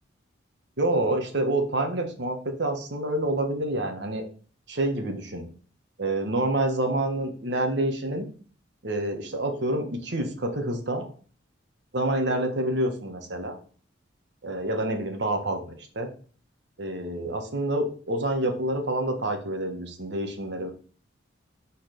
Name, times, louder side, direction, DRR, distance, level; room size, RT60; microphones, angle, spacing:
voice 1, 0.8-4.2 4.7-5.4 6.0-8.3 8.8-11.1 11.9-13.6 14.4-16.1 16.8-20.7, right 1 dB, 60° right, 5 dB, 1.3 m, -27 dB
6.4 x 4.2 x 5.1 m, 0.42 s
head